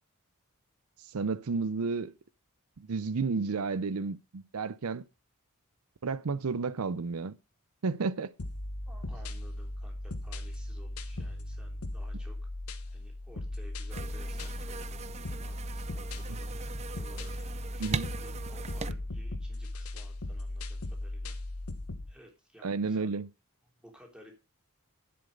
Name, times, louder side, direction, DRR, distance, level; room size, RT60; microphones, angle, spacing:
voice 1, 1.0-2.1 2.8-5.0 6.0-7.3 7.8-8.3 17.8-18.1 22.6-23.3, right 4 dB, 75° right, 0.6 m, -32 dB
sound 1, 8.4-22.1, left 1 dB, 85° left, 1.3 m, -38 dB
voice 2, 8.9-12.4 12.9-16.5 16.9-17.3 17.7-21.4 22.1-23.1 23.6-24.3, equal, 5° right, 3.3 m, -56 dB
sound 2, 13.9-18.9, right 4 dB, 30° right, 0.4 m, -40 dB
10.5 x 7.7 x 5.2 m
head